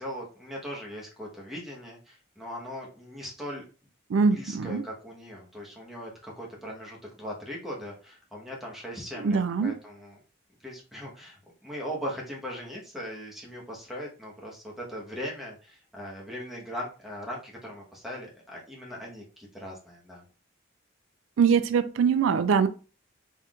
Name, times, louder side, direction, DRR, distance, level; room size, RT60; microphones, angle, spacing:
voice 1, 0.0-3.6 4.3-10.2 10.6-20.2, equal, ahead, 1.2 m, -39 dB
voice 2, 4.1-4.8 9.2-9.7 21.4-22.7, right 6 dB, 90° right, 0.3 m, -23 dB
4.2 x 3.7 x 2.5 m
head